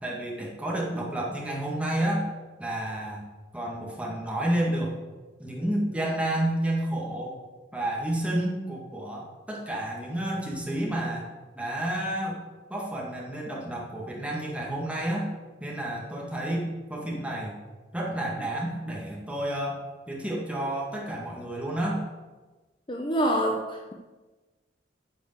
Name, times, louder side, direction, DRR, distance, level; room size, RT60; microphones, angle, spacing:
voice 1, 0.0-2.3 2.6-3.2 3.5-4.9 5.4-7.4 7.7-11.2 11.6-12.4 12.7-15.3 15.6-17.6 17.9-19.8 20.1-22.0, right 1 dB, 5° right, -3 dB, 1.9 m, -30 dB
voice 2, 22.9-23.9, right 1 dB, 25° left, 2 dB, 0.8 m, -26 dB
9.4 x 5.2 x 8.0 m, 1.2 s
head